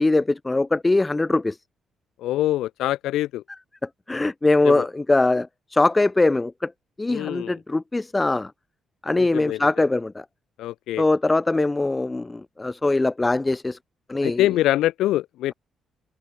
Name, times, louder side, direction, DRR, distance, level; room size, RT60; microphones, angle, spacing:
voice 1, 0.0-1.6 3.8-6.7 7.0-8.5 9.0-10.2 11.0-13.8 14.1-14.4, left 2 dB, 20° left, 2.0 m, -22 dB
voice 2, 2.2-3.4 4.6-4.8 7.1-7.5 9.2-9.6 10.6-11.0 14.2-15.5, left 14 dB, 85° left, 1.3 m, -24 dB
cardioid pair, 90°, 0 cm